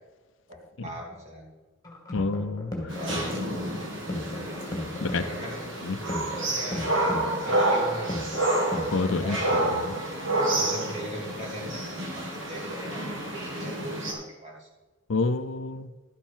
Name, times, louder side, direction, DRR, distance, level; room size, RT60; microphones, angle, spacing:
voice 1, 0.5-1.5 2.9-3.4 5.0-5.7 6.2-6.9 7.4-8.1 9.1-9.8 10.5-14.7, equal, 35° right, -2 dB, 2.9 m, -39 dB
sound 1, 1.8-9.8, left 1 dB, 20° left, 2.3 m, -36 dB
voice 2, 2.1-2.9 5.0-5.2 5.8-6.0 8.9-9.4 9.7-9.8 15.1-15.9, left 3 dB, 70° left, 12 dB, 0.6 m, -28 dB
sound 2, 2.9-14.1, right 1 dB, 65° right, 2.5 m, -29 dB
12.5 x 7.2 x 5.6 m, 1.2 s
head